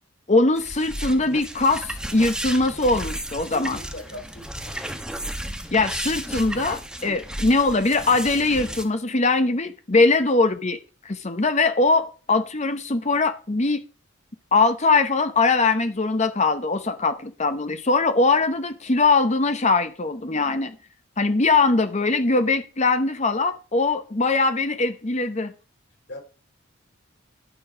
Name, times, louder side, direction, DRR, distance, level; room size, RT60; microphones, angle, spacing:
voice 1, 0.3-3.8 5.7-10.8 11.0-13.8 14.5-20.8 21.2-25.5, left 3 dB, 35° left, 0.9 m, -21 dB
sound 1, 0.6-8.8, right 1 dB, 5° right, 1.0 m, -33 dB
voice 2, 3.5-5.0 7.0-7.2 26.1-26.2, left 1 dB, 55° left, 3.4 m, -40 dB
11.5 x 6.9 x 4.8 m
head